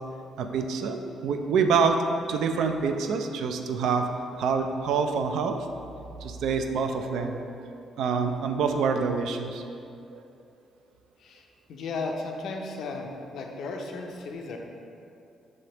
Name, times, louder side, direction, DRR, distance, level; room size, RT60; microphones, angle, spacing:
voice 1, 0.4-2.0 2.3-4.1 4.4-5.7 6.2-7.7 8.0-9.6 10.1-10.2, right 5 dB, 80° right, 6 dB, 0.3 m, -26 dB
voice 2, 11.7-14.6, left 3 dB, 70° left, 2 dB, 0.5 m, -35 dB
5.1 x 3.2 x 2.9 m, 2.5 s
cardioid pair, 90°, 0 cm